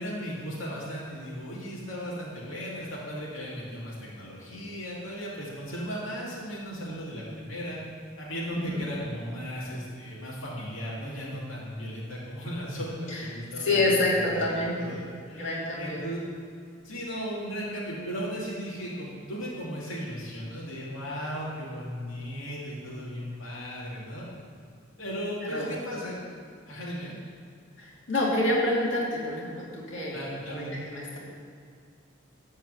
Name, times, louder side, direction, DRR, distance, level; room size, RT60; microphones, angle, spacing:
voice 1, 0.0-7.8 8.2-13.9 14.2-15.0 15.3-16.2 16.8-24.3 25.0-26.2 26.7-27.1 30.1-30.8, equal, 85° left, -6 dB, 2.4 m, -36 dB
voice 2, 8.5-8.8 12.7-13.2 13.6-14.8 15.3-16.0 25.4-25.7 27.8-30.2 30.5-31.2, left 2 dB, 65° left, -5 dB, 2.6 m, -28 dB
12.5 x 4.6 x 7.9 m, 2.2 s
head